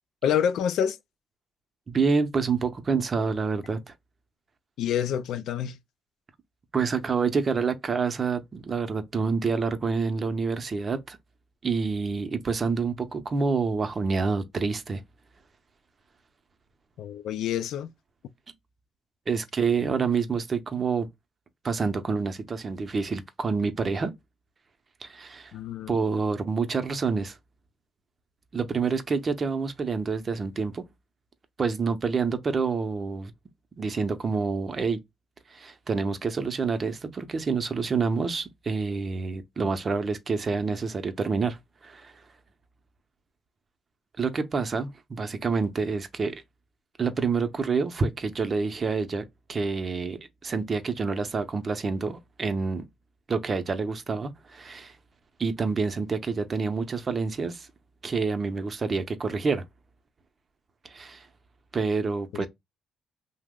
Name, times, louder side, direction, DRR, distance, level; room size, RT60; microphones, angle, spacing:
voice 1, 0.2-1.0 4.8-5.8 17.0-17.9 25.5-26.0 62.3-62.5, left 9 dB, 80° left, 0.3 m, -27 dB
voice 2, 1.9-3.9 6.7-11.2 11.6-15.0 19.3-21.1 21.6-24.1 25.0-25.5 25.9-27.4 28.5-30.8 31.6-33.3 33.8-35.0 35.5-42.1 44.2-46.4 47.0-52.9 53.3-54.9 55.4-57.7 58.0-59.6 60.8-61.3 61.7-62.5, right 4 dB, 40° right, 0.6 m, -27 dB
2.8 x 2.0 x 3.5 m
cardioid pair, 90°, 0 cm